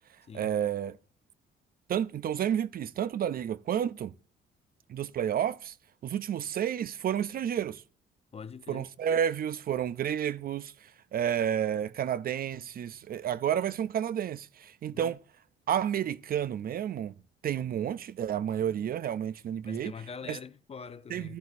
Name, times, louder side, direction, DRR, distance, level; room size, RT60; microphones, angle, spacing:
voice 1, 0.3-1.0 1.9-4.1 4.9-5.7 6.0-7.8 8.7-10.7 11.1-15.2 15.7-17.1 17.4-19.9 20.3-20.4 21.1-21.4, right 9 dB, 50° right, 0.4 m, -30 dB
voice 2, 8.3-8.9 14.9-15.2 19.6-21.4, left 6 dB, 30° left, 0.5 m, -43 dB
13.5 x 7.9 x 2.5 m
cardioid pair, 90°, 20 cm